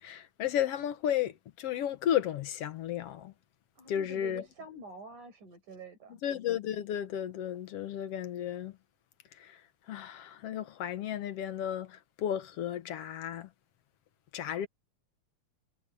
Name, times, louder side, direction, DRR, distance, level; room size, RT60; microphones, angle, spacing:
voice 1, 0.0-3.3 3.9-4.4 6.2-8.8 9.3-9.6 9.9-13.5 14.3-14.7, left 10 dB, 60° left, 1.9 m, -33 dB
voice 2, 3.8-6.2, right 3 dB, 85° right, 7.9 m, -47 dB
omnidirectional pair, 3.4 m